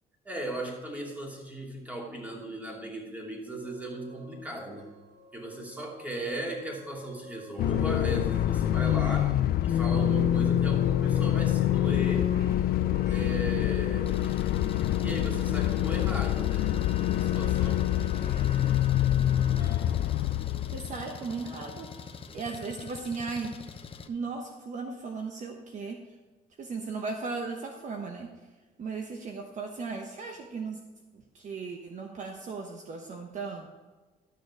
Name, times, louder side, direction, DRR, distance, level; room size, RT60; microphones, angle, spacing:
voice 1, 0.2-4.9 5.3-9.3 9.6-12.3 13.1-14.5 14.7-16.8 17.1-17.9, right 1 dB, 10° right, -1 dB, 2.7 m, -37 dB
sound 1, 3.6-23.0, left 1 dB, 90° right, 3.4 m, -51 dB
sound 2, 7.6-21.0, left 12 dB, 65° left, 0.5 m, -26 dB
Engine, 14.1-24.1, left 6 dB, 30° left, 0.9 m, -44 dB
voice 2, 20.7-21.9 22.3-23.5 24.1-26.0 26.6-28.3 28.8-30.8 31.3-33.7, right 4 dB, 45° right, 3 dB, 1.1 m, -36 dB
12.5 x 6.6 x 4.8 m, 1.3 s
cardioid pair, 110°, 17 cm